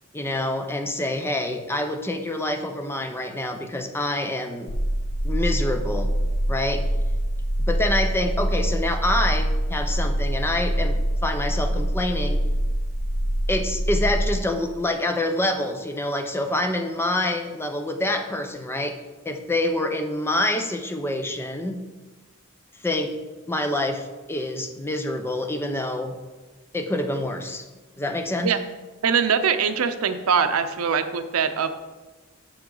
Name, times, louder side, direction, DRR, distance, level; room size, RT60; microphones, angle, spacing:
voice 1, 0.1-4.7 5.2-6.1 6.5-6.9 7.7-12.4 13.5-19.0 19.3-21.8 22.8-23.1 23.5-26.1 26.7-27.6 28.0-28.5, left 1 dB, 10° left, 6 dB, 0.5 m, -26 dB
sound 1, 4.7-14.4, equal, 60° left, 0.7 m, -24 dB
voice 2, 29.0-31.7, right 6 dB, 80° right, 10 dB, 0.6 m, -22 dB
7.6 x 6.3 x 3.8 m, 1.2 s
head